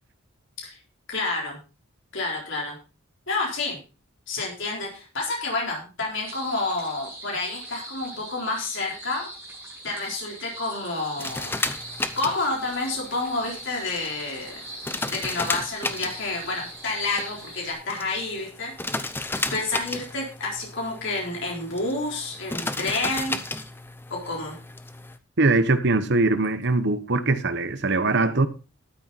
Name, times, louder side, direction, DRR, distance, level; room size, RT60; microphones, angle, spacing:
voice 1, 1.1-1.6 2.1-2.8 3.3-3.8 4.3-9.3 9.8-11.6 12.2-14.6 15.1-18.9 19.5-23.4 24.1-24.6, left 3 dB, 60° left, 4.1 m, -29 dB
sound 1, 6.2-17.7, right 1 dB, 10° right, 5.9 m, -41 dB
sound 2, 11.2-25.2, left 2 dB, 10° left, 0.7 m, -34 dB
voice 2, 25.4-28.5, right 3 dB, 55° right, 1.1 m, -21 dB
13.0 x 9.1 x 4.1 m
head